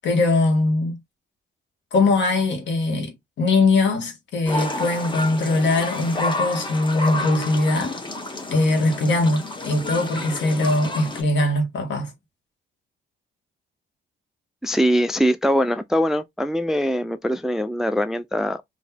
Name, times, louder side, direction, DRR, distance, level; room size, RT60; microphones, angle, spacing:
voice 1, 0.0-1.0 1.9-8.0 8.5-12.1, left 2 dB, 65° left, 1.4 m, -21 dB
sound 1, 4.5-11.2, left 2 dB, 25° left, 1.0 m, -30 dB
voice 2, 14.6-18.6, equal, ahead, 0.3 m, -22 dB
3.7 x 2.6 x 2.8 m
cardioid pair, 90°, 20 cm